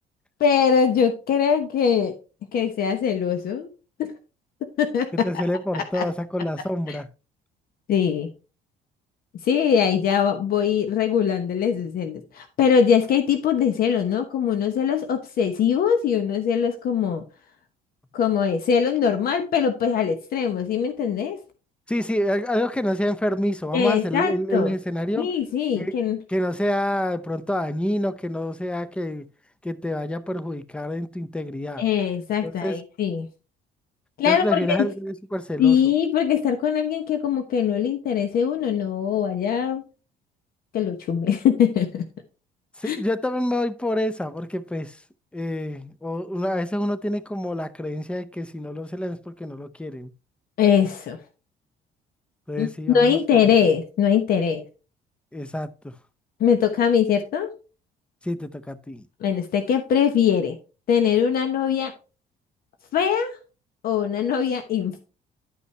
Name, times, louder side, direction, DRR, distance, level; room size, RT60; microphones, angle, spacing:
voice 1, 0.4-2.1 2.5-3.7 4.0-4.1 4.8-5.4 5.9-6.0 6.9-7.0 7.9-8.3 9.4-17.2 18.1-21.4 23.7-24.7 25.2-26.2 31.8-33.3 34.2-34.9 35.6-39.8 40.7-42.0 42.8-43.0 50.6-51.2 52.6-54.6 56.4-57.5 59.2-60.6 60.9-61.9 62.9-63.4 63.8-65.0, left 7 dB, 60° left, 1.0 m, -22 dB
voice 2, 5.1-7.1 21.9-25.3 25.8-26.0 26.3-29.3 29.6-31.8 32.4-32.8 34.3-35.8 42.8-45.0 45.3-50.1 52.5-53.4 55.3-56.0 58.2-59.1, left 1 dB, 5° left, 0.6 m, -27 dB
11.0 x 5.5 x 3.3 m
cardioid pair, 110°, 17 cm